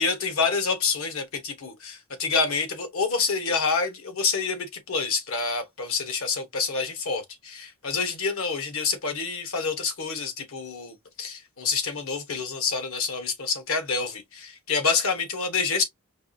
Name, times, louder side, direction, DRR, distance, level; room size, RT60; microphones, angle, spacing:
voice 1, 0.0-15.8, left 4 dB, 70° left, 1.0 m, -27 dB
4.6 x 2.4 x 2.6 m
head